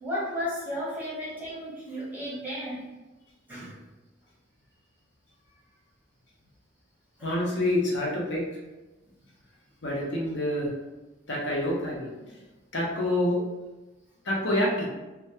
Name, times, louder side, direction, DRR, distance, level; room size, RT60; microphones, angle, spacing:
voice 1, 0.0-2.8 3.5-3.8 7.2-7.3, equal, 10° right, -9 dB, 0.7 m, -34 dB
voice 2, 7.2-8.5 9.8-10.7 11.3-12.4 12.7-13.4 14.2-14.9, left 1 dB, 60° left, -3 dB, 0.6 m, -27 dB
2.2 x 2.1 x 2.7 m, 1.1 s
head